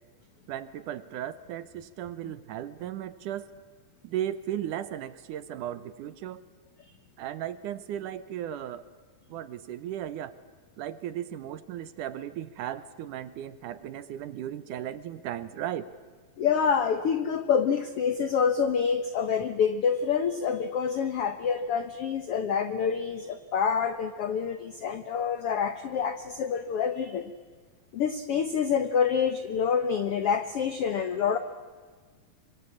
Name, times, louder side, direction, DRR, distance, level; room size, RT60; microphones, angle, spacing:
voice 1, 0.5-3.5 4.0-6.4 7.2-8.8 9.3-10.3 10.8-15.9, right 11 dB, 70° right, 14 dB, 2.2 m, -36 dB
voice 2, 16.4-27.3 27.9-31.4, left 7 dB, 90° left, 10 dB, 1.2 m, -27 dB
26.0 x 24.5 x 8.5 m, 1.5 s
omnidirectional pair, 4.2 m